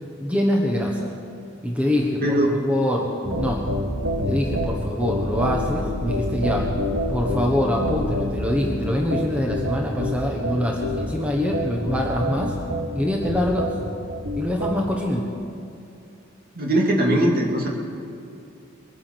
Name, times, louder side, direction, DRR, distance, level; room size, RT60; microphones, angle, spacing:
voice 1, 0.2-1.1 1.6-3.1 3.4-3.6 4.3-6.7 7.1-12.5 12.9-13.7 14.4-15.2, left 1 dB, 5° right, 0 dB, 1.3 m, -24 dB
sound 1, 3.2-14.8, equal, 80° right, 1.4 m, -27 dB
voice 2, 16.5-17.7, right 1 dB, 50° right, 0 dB, 2.4 m, -20 dB
22.5 x 9.8 x 6.0 m, 2.6 s
head